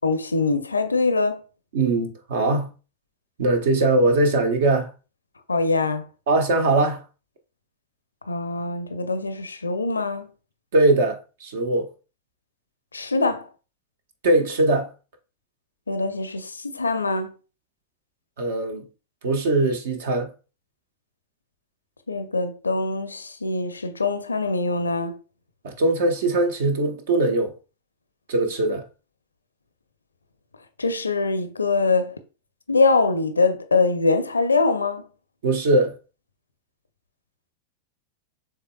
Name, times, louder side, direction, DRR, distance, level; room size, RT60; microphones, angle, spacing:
voice 1, 0.0-1.4 5.5-6.1 8.3-10.3 12.9-13.5 15.9-17.3 22.1-25.2 30.8-32.1 32.7-35.0, left 3 dB, 75° left, 0.5 m, -23 dB
voice 2, 1.7-2.7 3.4-4.9 6.3-7.0 10.7-11.9 14.2-14.9 18.4-18.9 19.2-20.3 25.6-27.5 28.3-28.8 35.4-35.9, right 2 dB, 55° right, 1.0 m, -21 dB
6.5 x 3.4 x 2.2 m
figure-of-eight pair, 90°, 0 cm